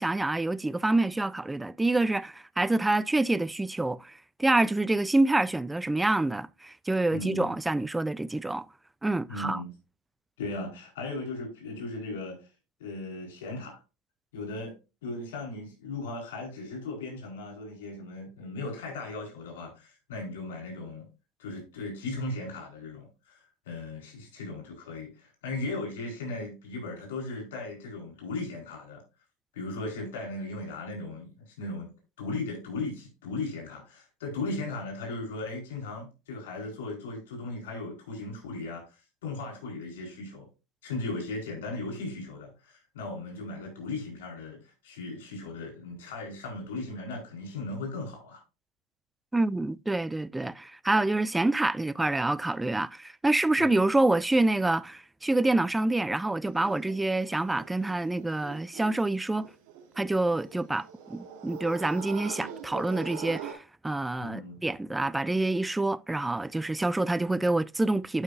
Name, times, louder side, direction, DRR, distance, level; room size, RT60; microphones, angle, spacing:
voice 1, 0.0-8.7 9.0-9.6 49.3-59.5 60.0-68.2, right 2 dB, 10° right, 0.3 m, -27 dB
voice 2, 7.1-7.6 9.3-9.7 10.4-12.5 12.8-13.8 14.3-14.7 15.0-21.0 21.4-23.4 23.6-29.0 29.5-31.9 32.2-40.5 40.8-48.4 53.6-53.8 64.2-64.6, left 2 dB, 85° left, 4.8 m, -37 dB
sound 1, 56.4-63.5, right 7 dB, 70° right, 2.9 m, -43 dB
11.5 x 5.6 x 2.7 m
supercardioid pair, 115°, 0 cm